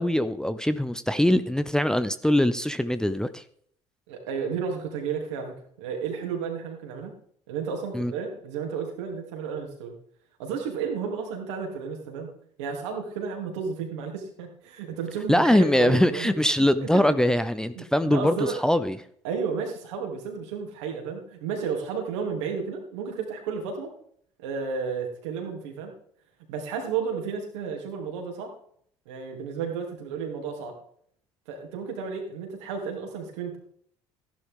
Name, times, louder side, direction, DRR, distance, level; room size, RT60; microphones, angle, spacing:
voice 1, 0.0-3.4 7.9-8.1 15.3-19.0, left 1 dB, 5° left, 12 dB, 0.8 m, -22 dB
voice 2, 4.1-7.1 7.5-9.9 10.4-12.3 12.6-17.0 17.7-18.6 19.2-23.9 24.4-25.9 26.5-28.5 29.0-30.8 31.5-33.6, right 6 dB, 70° right, 2 dB, 3.2 m, -32 dB
15.0 x 11.5 x 3.8 m, 0.62 s
figure-of-eight pair, 55°, 15 cm